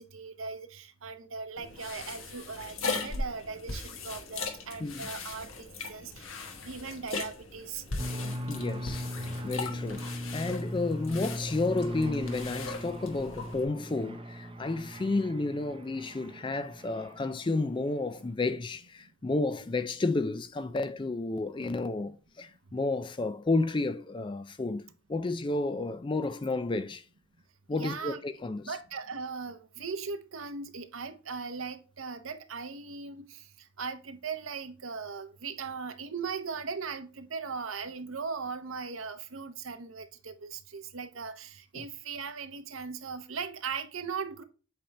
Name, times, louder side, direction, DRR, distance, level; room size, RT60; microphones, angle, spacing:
voice 1, 0.0-6.3 6.7-7.8 27.7-28.2 28.7-33.5 33.8-44.4, right 5 dB, 80° right, 0.8 m, -39 dB
sound 1, 1.6-13.6, left 3 dB, 85° left, 1.3 m, -39 dB
sound 2, 8.0-17.5, equal, 25° right, 0.7 m, -39 dB
voice 2, 8.5-27.0 27.7-28.7 41.8-41.9, left 3 dB, 25° left, 0.4 m, -31 dB
7.7 x 3.5 x 4.2 m
head